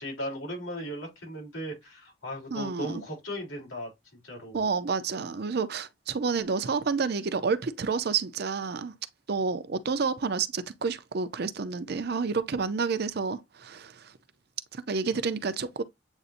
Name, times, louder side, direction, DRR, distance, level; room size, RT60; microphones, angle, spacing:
voice 1, 0.0-3.9 4.2-4.7, equal, 80° left, 3.4 m, -37 dB
voice 2, 2.5-3.0 4.5-8.9 9.3-14.1 14.7-15.8, right 5 dB, 55° right, 0.5 m, -29 dB
8.0 x 2.7 x 2.5 m
head